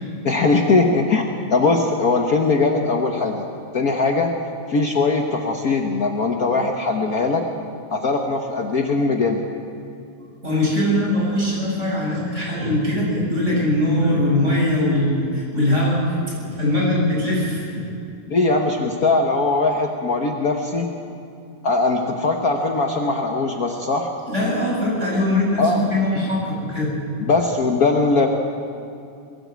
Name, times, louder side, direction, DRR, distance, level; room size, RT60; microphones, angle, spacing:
voice 1, 0.2-3.4 3.7-4.3 4.7-7.5 7.9-9.4 18.3-20.9 21.6-24.1 25.6-25.8 27.3-28.3, left 3 dB, 75° left, 2 dB, 0.8 m, -20 dB
voice 2, 10.4-17.8 24.3-26.9 27.2-27.3, left 1 dB, 20° right, -5 dB, 7.7 m, -21 dB
22.0 x 15.0 x 8.2 m, 2.6 s
omnidirectional pair, 3.4 m